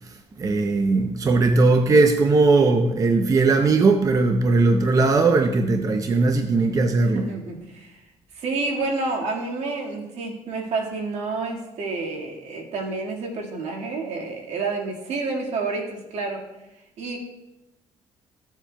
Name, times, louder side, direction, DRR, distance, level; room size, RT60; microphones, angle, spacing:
voice 1, 0.0-7.2, right 3 dB, 30° right, 6 dB, 0.6 m, -19 dB
voice 2, 7.1-8.0 8.3-16.4 17.0-17.2, right 3 dB, 70° right, 0 dB, 1.8 m, -29 dB
14.5 x 7.3 x 2.2 m, 0.98 s
cardioid pair, 115°, 12 cm